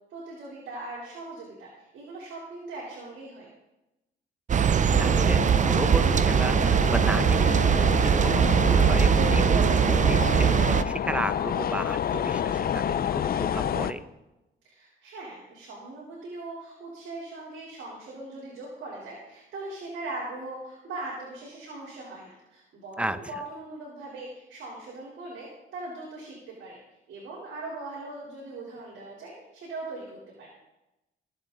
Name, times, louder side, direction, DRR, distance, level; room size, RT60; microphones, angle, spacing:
voice 1, 0.1-3.5 14.6-26.8 27.1-30.5, right 2 dB, 75° right, -5 dB, 3.8 m, -40 dB
voice 2, 4.5-14.0 23.0-23.2, right 1 dB, 5° right, 12 dB, 0.8 m, -34 dB
sound 1, 4.5-10.8, right 7 dB, 40° right, 0.6 m, -21 dB
sound 2, 4.9-13.9, left 9 dB, 50° left, 0.6 m, -30 dB
21.0 x 7.8 x 4.0 m, 0.96 s
cardioid pair, 90°, 20 cm